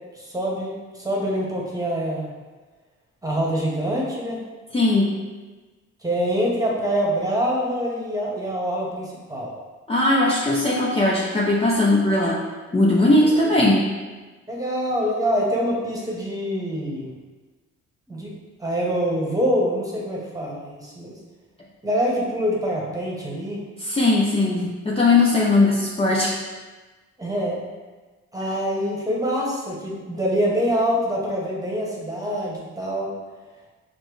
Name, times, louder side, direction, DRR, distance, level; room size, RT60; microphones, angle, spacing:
voice 1, 0.1-2.3 3.2-4.4 6.0-9.5 13.2-13.4 14.5-17.1 18.1-18.3 18.6-21.1 21.8-23.6 27.2-27.6 28.3-33.1, equal, 10° right, -4 dB, 1.1 m, -25 dB
voice 2, 4.7-5.2 9.9-12.4 12.7-13.9 23.8-26.3, left 2 dB, 20° left, -5 dB, 0.5 m, -19 dB
5.8 x 2.1 x 3.2 m, 1.3 s
cardioid pair, 90°, 30 cm